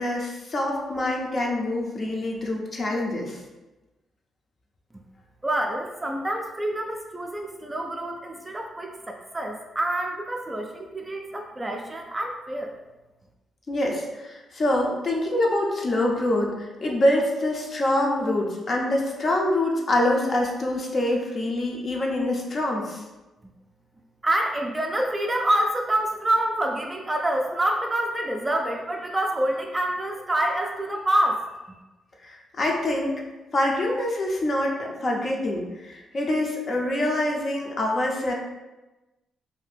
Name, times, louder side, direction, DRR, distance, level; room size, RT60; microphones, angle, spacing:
voice 1, 0.0-3.4 13.7-23.0 32.2-33.2 33.5-38.3, left 1 dB, 40° left, -1 dB, 0.7 m, -25 dB
voice 2, 5.4-12.7 24.2-31.5, right 1 dB, 20° right, 1 dB, 0.4 m, -27 dB
2.7 x 2.5 x 3.4 m, 1.1 s
cardioid pair, 90°, 0 cm